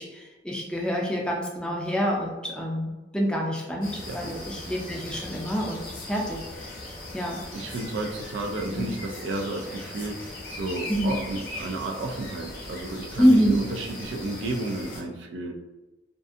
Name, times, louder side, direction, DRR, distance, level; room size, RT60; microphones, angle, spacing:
voice 1, 0.0-6.8 7.1-7.4 8.7-8.9 10.9-11.1 13.2-13.6, equal, 5° left, -2 dB, 0.4 m, -26 dB
sound 1, 3.8-15.0, left 2 dB, 50° left, 0.7 m, -39 dB
voice 2, 7.5-15.5, right 2 dB, 85° right, 3 dB, 0.4 m, -32 dB
2.5 x 2.4 x 2.4 m, 1.1 s
head